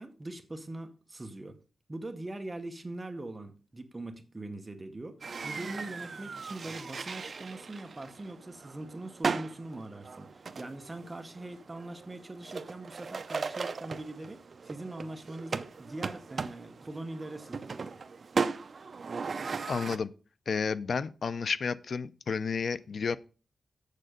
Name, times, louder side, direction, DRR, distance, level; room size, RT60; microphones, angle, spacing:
voice 1, 0.0-1.6 1.9-18.0, right 2 dB, 20° right, 0.9 m, -42 dB
sound 1, 5.2-20.0, right 5 dB, 50° right, 0.5 m, -37 dB
voice 2, 19.7-20.1 20.5-23.2, left 5 dB, 60° left, 0.5 m, -31 dB
7.6 x 6.6 x 5.1 m
wide cardioid pair, 140°, 0 cm